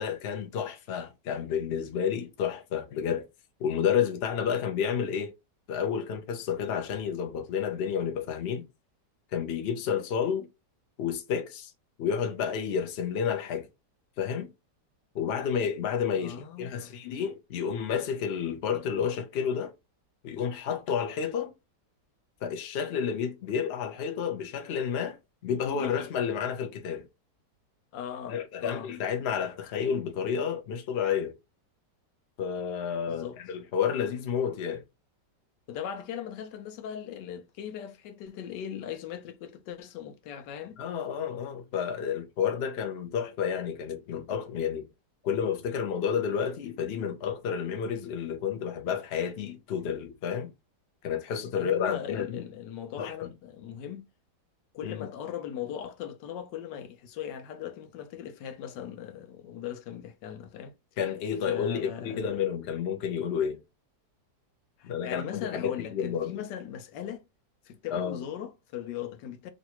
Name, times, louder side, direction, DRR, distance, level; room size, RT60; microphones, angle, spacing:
voice 1, 0.0-3.3 3.6-5.3 5.7-8.7 9.3-10.5 11.0-11.7 12.0-13.7 14.2-14.5 15.1-19.7 20.2-21.5 22.4-25.2 25.4-27.1 28.3-31.3 32.4-34.8 40.8-44.9 45.2-50.5 51.0-52.4 53.0-53.3 54.8-55.1 61.0-63.6 64.8-66.4 67.9-68.2, left 7 dB, 60° left, 0.6 m, -30 dB
voice 2, 16.2-16.9 25.7-25.9 27.9-28.9 33.1-33.4 35.7-40.8 51.5-54.0 54.7-60.7 61.4-62.3 64.8-67.2 67.6-69.5, left 9 dB, 85° left, 1.3 m, -39 dB
3.1 x 2.5 x 2.9 m
omnidirectional pair, 1.8 m